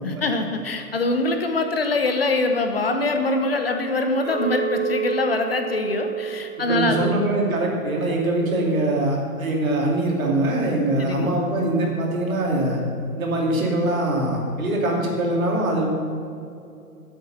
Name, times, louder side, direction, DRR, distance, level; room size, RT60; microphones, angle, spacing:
voice 1, 0.0-7.1 11.0-11.3, left 2 dB, 40° left, 6 dB, 0.8 m, -23 dB
Chink clink, 4.2-8.6 8.9-9.4, right 8 dB, 15° right, 1.7 m, -31 dB
voice 2, 6.7-12.8 13.1-15.9, right 1 dB, 60° right, -1 dB, 3.0 m, -23 dB
10.0 x 8.0 x 6.5 m, 2.5 s
hypercardioid pair, 175°, 47 cm